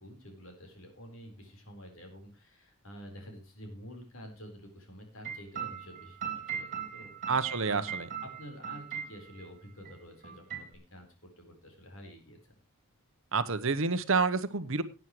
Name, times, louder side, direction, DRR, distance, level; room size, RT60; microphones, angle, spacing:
voice 1, 0.0-12.5, equal, 60° left, 3 dB, 4.2 m, -49 dB
sound 1, 5.2-9.5 9.9-10.0 10.2-10.7, right 8 dB, 35° right, 3.2 m, -39 dB
voice 2, 7.3-8.1 13.3-14.8, right 4 dB, 60° right, 12 dB, 1.0 m, -28 dB
18.5 x 9.3 x 3.1 m, 0.29 s
head